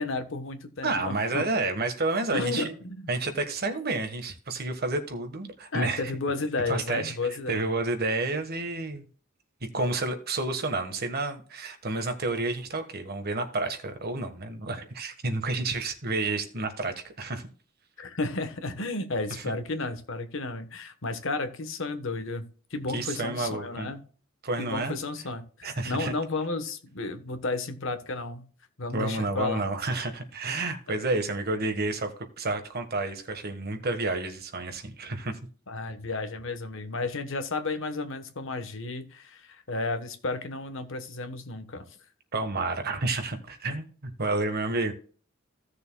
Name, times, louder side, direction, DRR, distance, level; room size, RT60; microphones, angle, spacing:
voice 1, 0.0-1.5 2.3-3.1 5.7-7.6 18.0-24.1 24.6-28.5 28.8-29.6 35.7-41.8, left 3 dB, 65° left, 1.2 m, -33 dB
voice 2, 0.8-2.7 3.1-6.0 6.7-9.1 9.7-17.5 22.9-23.9 24.4-25.0 25.6-26.1 28.9-32.1 32.4-35.3 42.3-44.9, right 2 dB, 50° right, 1.4 m, -30 dB
16.0 x 6.7 x 2.3 m
head